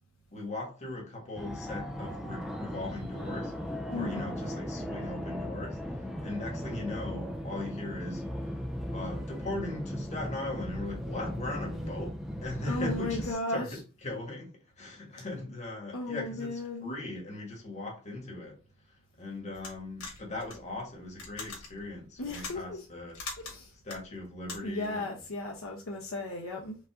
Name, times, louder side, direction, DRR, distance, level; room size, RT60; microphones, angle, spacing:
voice 1, 0.3-3.6 3.9-8.3 8.9-18.6 19.2-23.2 23.8-25.2, left 2 dB, 35° left, 1.6 m, -39 dB
Fixed-wing aircraft airplane, 1.4-13.3, equal, ahead, 0.5 m, -37 dB
voice 2, 3.9-4.2 11.7-11.9 12.6-13.8 15.2-15.3 15.9-17.0 22.2-22.9 23.4-23.7 24.6-26.8, left 2 dB, 65° left, 0.9 m, -35 dB
sound 1, 19.5-24.9, left 4 dB, 90° left, 2.2 m, -44 dB
5.3 x 2.6 x 3.6 m
head